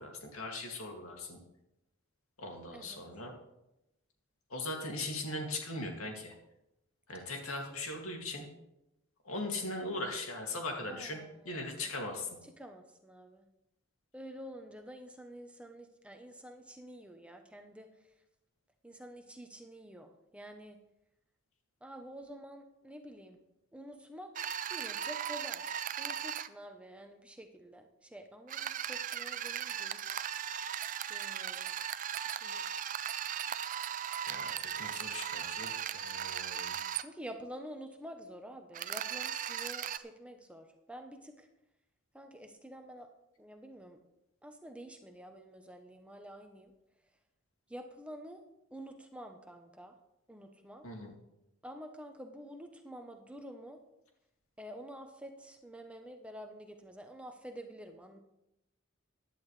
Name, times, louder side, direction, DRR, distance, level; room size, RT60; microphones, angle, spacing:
voice 1, 0.0-1.4 2.4-3.4 4.5-6.3 7.1-8.5 9.2-12.3 34.3-36.7 50.8-51.1, left 2 dB, 90° left, 1 dB, 2.4 m, -39 dB
voice 2, 10.9-11.9 12.6-13.5 14.1-18.1 18.8-20.8 21.8-23.4 23.7-30.2 31.1-31.7 32.4-32.7 37.0-41.5 42.1-43.1 43.4-44.0 44.4-46.7 47.7-48.4 48.7-50.0 50.3-50.9 51.6-53.8 54.6-58.2, equal, 5° right, 4 dB, 0.8 m, -49 dB
sound 1, 24.4-26.5 28.5-37.0 38.7-40.0, right 9 dB, 40° right, 0.4 m, -37 dB
15.5 x 11.0 x 3.3 m, 0.89 s
head